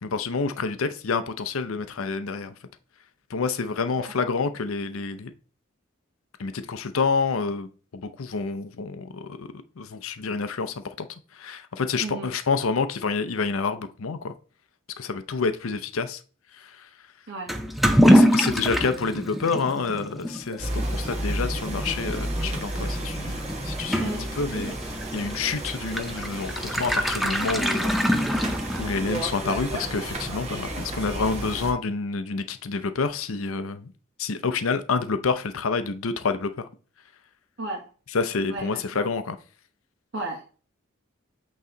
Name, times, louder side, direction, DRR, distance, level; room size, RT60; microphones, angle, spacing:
voice 1, 0.0-2.5 3.3-5.3 6.4-11.1 11.3-14.3 15.0-16.2 16.5-16.9 18.1-33.9 34.2-36.7 38.1-39.4, left 4 dB, 75° left, 0.6 m, -28 dB
voice 2, 4.0-4.3 12.0-12.3 17.3-17.5 24.0-24.4 37.6-37.8 38.5-39.1 40.1-40.6, right 2 dB, 55° right, 1.4 m, -35 dB
Toilet flush / Liquid, 17.5-29.1, equal, ahead, 0.6 m, -25 dB
sound 1, 20.6-31.7, right 1 dB, 30° right, 1.5 m, -32 dB
8.2 x 3.2 x 3.8 m
head